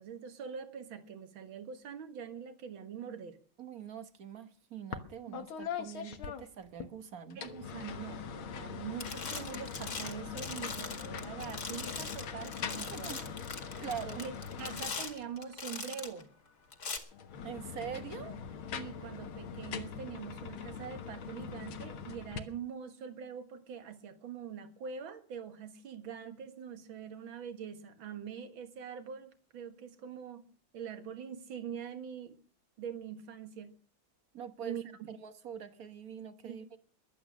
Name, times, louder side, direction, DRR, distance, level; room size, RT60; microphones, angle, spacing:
voice 1, 0.0-3.4 5.3-5.4 7.4-13.4 14.2-16.3 18.7-30.4 30.7-32.4 32.8-33.7 34.6-34.8 36.4-36.6, right 7 dB, 75° right, 2.4 m, -44 dB
voice 2, 3.6-7.4 12.9-13.2 13.8-14.2 17.4-18.4 34.3-34.8 35.1-36.8, right 8 dB, 50° right, 1.7 m, -44 dB
sound 1, 4.9-5.1 5.3-6.9 7.3-15.4 17.1-22.4, left 7 dB, 85° left, 2.1 m, -42 dB
sound 2, 8.5-8.7 9.0-16.2 16.7-17.0, left 4 dB, 50° left, 2.5 m, -42 dB
22.0 x 8.6 x 6.3 m
omnidirectional pair, 2.2 m